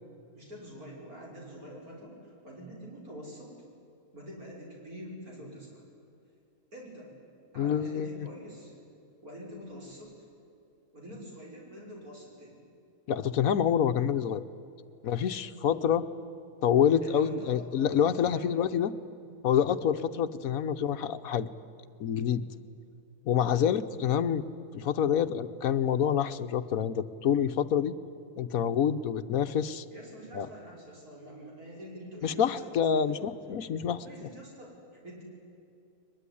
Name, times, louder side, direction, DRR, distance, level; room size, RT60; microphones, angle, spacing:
voice 1, 0.3-3.5 4.1-5.8 6.7-7.1 7.5-8.7 9.2-10.1 10.9-12.6 17.0-18.5 29.9-33.3 33.8-35.2, equal, 70° right, -2 dB, 6.8 m, -46 dB
voice 2, 7.6-8.3 13.1-14.4 15.0-16.1 16.6-18.9 19.4-21.5 22.0-22.4 23.2-24.4 24.7-27.9 28.4-29.8 30.3-30.5 32.2-34.0, left 8 dB, 70° left, 11 dB, 1.2 m, -27 dB
22.0 x 21.5 x 9.9 m, 2.7 s
omnidirectional pair, 1.6 m